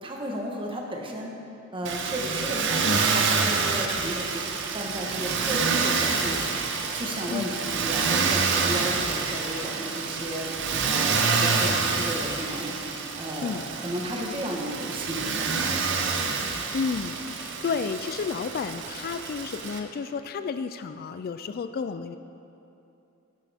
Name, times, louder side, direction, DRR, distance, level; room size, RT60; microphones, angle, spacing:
voice 1, 0.0-1.3 1.7-2.8 3.1-4.4 4.7-10.5 10.8-12.7 13.1-16.2, equal, 25° right, 0 dB, 1.2 m, -34 dB
Motor vehicle (road), 1.8-19.8, right 5 dB, 60° right, 0.8 m, -27 dB
voice 2, 16.7-22.2, left 5 dB, 45° left, 11 dB, 0.3 m, -31 dB
11.5 x 10.5 x 3.5 m, 2.8 s
head